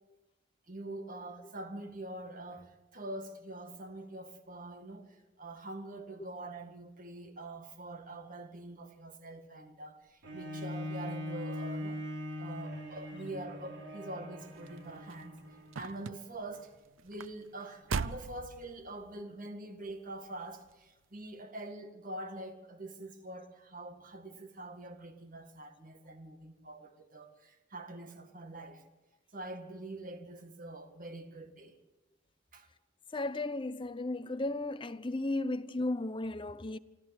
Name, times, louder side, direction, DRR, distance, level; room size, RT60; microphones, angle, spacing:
voice 1, 0.7-12.0 12.4-15.4 15.8-16.8 17.0-28.8 29.3-31.8 32.5-32.7, right 2 dB, 45° right, 2.0 m, -45 dB
Bowed string instrument, 10.2-15.9 16.5-16.6, left 1 dB, 65° right, 3.5 m, -41 dB
sound 1, 14.4-19.2 19.9-20.3 20.6-20.7, right 4 dB, 90° right, 0.6 m, -41 dB
voice 2, 33.1-36.8, left 2 dB, 25° left, 0.7 m, -35 dB
25.5 x 13.5 x 8.1 m
head